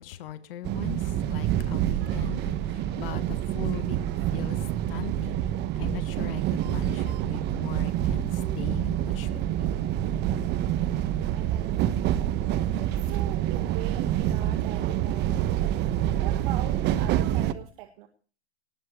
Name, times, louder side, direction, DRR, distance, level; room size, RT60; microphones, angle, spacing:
voice 1, 0.0-4.6 4.9-5.5 5.7-9.9, left 12 dB, 60° left, 1.5 m, -40 dB
sound 1, 0.6-17.5, right 12 dB, 35° right, 1.2 m, -27 dB
voice 2, 11.3-12.3 12.8-15.3 16.1-18.1, right 13 dB, 50° right, 1.9 m, -41 dB
19.5 x 7.8 x 8.0 m
hypercardioid pair, 120°, 32 cm